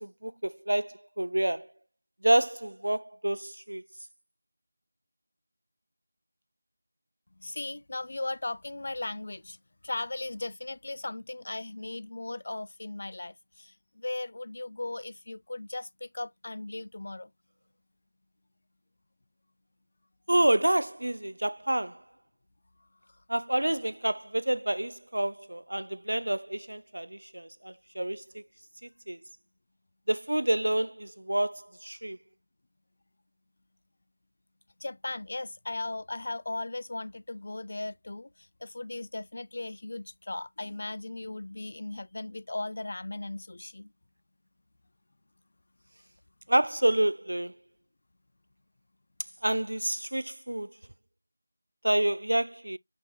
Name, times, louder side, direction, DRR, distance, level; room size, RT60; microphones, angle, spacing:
voice 1, 0.0-1.7 2.2-3.8 20.3-22.0 23.3-28.4 29.1-29.2 30.1-32.2 46.5-47.5 49.4-50.7 51.8-52.8, right 1 dB, 90° right, 0.4 m, -28 dB
voice 2, 7.4-9.6 9.8-17.3 34.8-43.9, left 2 dB, 55° left, 0.4 m, -37 dB
7.6 x 4.5 x 2.9 m
figure-of-eight pair, 170°, 0 cm